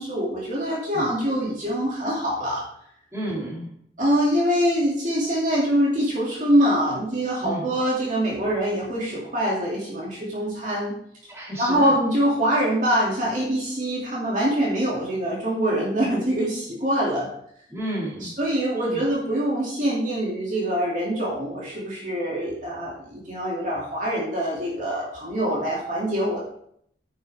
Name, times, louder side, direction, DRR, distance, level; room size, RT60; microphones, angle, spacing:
voice 1, 0.0-2.6 4.0-11.0 11.6-17.3 18.2-26.4, equal, 45° right, -5 dB, 2.7 m, -24 dB
voice 2, 3.1-3.7 7.4-7.7 11.3-11.9 17.7-18.3 18.9-19.0, right 1 dB, 15° right, -6 dB, 3.3 m, -31 dB
9.8 x 8.5 x 3.6 m, 0.68 s
head